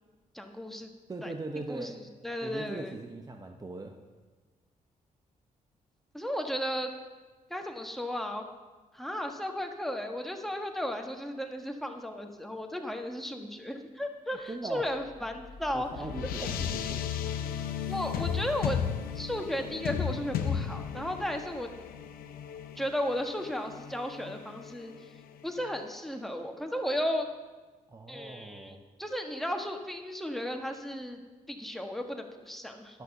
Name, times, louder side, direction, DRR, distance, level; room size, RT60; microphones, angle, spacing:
voice 1, 0.3-0.9 1.2-1.9 2.2-2.9 6.1-6.9 7.5-8.4 8.9-15.9 17.9-18.8 19.1-21.7 22.8-24.9 25.4-27.3 28.1-31.2 31.5-33.0, equal, ahead, 4 dB, 1.4 m, -34 dB
voice 2, 1.1-2.0 2.4-3.9 14.5-14.9 15.7-17.1 27.9-28.8 32.9-33.0, right 2 dB, 25° right, 4 dB, 0.9 m, -40 dB
sound 1, 15.0-25.8, left 8 dB, 90° left, 0.7 m, -35 dB
11.0 x 6.6 x 6.6 m, 1.3 s
cardioid pair, 70°, 15 cm